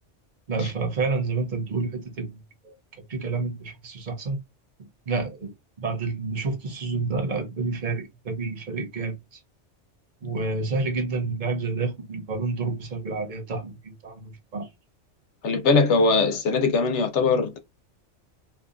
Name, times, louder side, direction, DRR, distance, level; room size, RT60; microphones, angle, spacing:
voice 1, 0.5-2.7 3.1-4.4 5.1-5.5 5.8-9.4 10.2-14.7, right 3 dB, 45° right, 0.9 m, -29 dB
voice 2, 15.4-17.6, left 4 dB, 75° left, 1.0 m, -21 dB
2.7 x 2.3 x 2.4 m
omnidirectional pair, 1.2 m